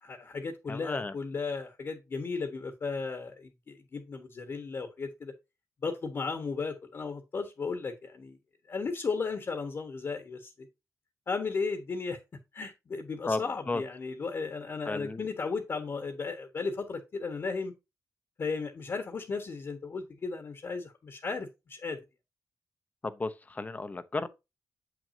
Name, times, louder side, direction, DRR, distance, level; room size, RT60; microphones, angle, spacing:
voice 1, 0.0-5.3 5.8-8.4 8.7-10.7 11.3-12.2 12.5-17.7 18.4-22.0, left 4 dB, 45° left, 1.3 m, -35 dB
voice 2, 0.7-1.1 13.3-13.4 13.7-13.8 14.9-15.3 23.0-24.3, left 3 dB, 25° left, 0.8 m, -33 dB
7.9 x 6.1 x 2.7 m
wide cardioid pair, 115°, 6 cm